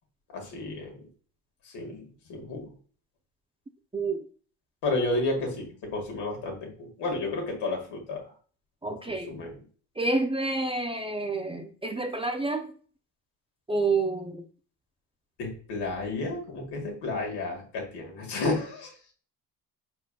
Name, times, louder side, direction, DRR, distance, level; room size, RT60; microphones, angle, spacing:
voice 1, 0.3-0.9 1.7-2.6 4.8-6.7 7.0-8.2 9.3-9.5 15.4-18.9, left 2 dB, 75° left, 1 dB, 1.8 m, -31 dB
voice 2, 3.9-4.2 8.8-9.3 10.0-12.7 13.7-14.4, right 3 dB, 15° right, 5 dB, 0.4 m, -28 dB
4.9 x 4.4 x 2.2 m, 0.42 s
supercardioid pair, 75°, 40 cm